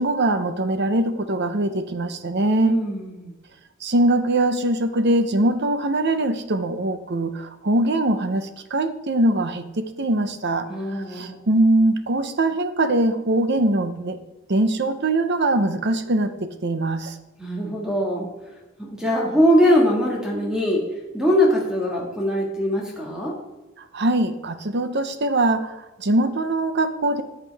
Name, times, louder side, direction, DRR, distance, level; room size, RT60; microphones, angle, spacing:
voice 1, 0.0-2.8 3.8-10.7 11.1-14.2 14.5-17.2 23.9-27.2, right 2 dB, 55° right, 10 dB, 0.9 m, -22 dB
voice 2, 2.6-3.3 10.7-11.5 17.4-18.3 18.8-20.8 21.1-23.4, equal, 5° right, -2 dB, 1.9 m, -21 dB
14.0 x 8.2 x 3.5 m, 1.1 s
head